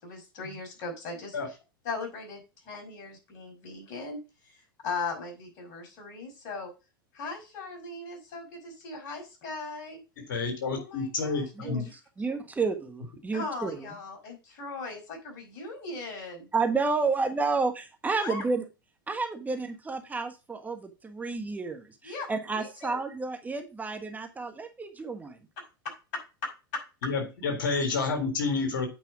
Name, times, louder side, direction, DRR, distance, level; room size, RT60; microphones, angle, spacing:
voice 1, 0.0-1.6 1.8-4.2 4.4-6.7 7.1-10.0 10.7-11.7 13.3-16.5 18.2-18.4 22.0-22.3 22.6-23.0 25.6-25.9 26.7-26.8 27.7-27.8, left 3 dB, 55° left, 2 dB, 5.7 m, -39 dB
voice 2, 10.2-11.9 27.0-28.9, left 4 dB, 70° left, 5 dB, 3.7 m, -29 dB
voice 3, 12.2-13.9 16.5-18.6 19.1-25.4, right 4 dB, 15° right, 6 dB, 1.3 m, -30 dB
8.8 x 5.4 x 4.8 m, 0.28 s
hypercardioid pair, 105°, 11 cm